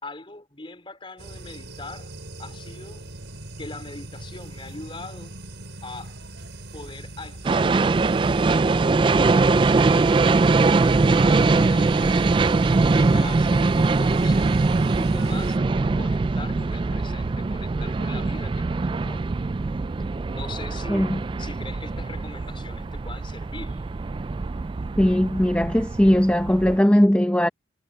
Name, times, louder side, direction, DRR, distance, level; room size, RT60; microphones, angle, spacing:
voice 1, 0.0-2.1 2.4-3.1 3.6-5.3 5.8-6.2 6.7-9.8 10.6-19.2 20.3-23.8, left 2 dB, 30° left, 4.5 m, -41 dB
sound 1, 1.2-15.6, right 1 dB, 80° right, 4.7 m, -39 dB
sound 2, 7.4-26.8, right 3 dB, 30° right, 0.3 m, -22 dB
voice 2, 20.9-21.2 25.0-27.5, equal, 10° left, 0.8 m, -19 dB
head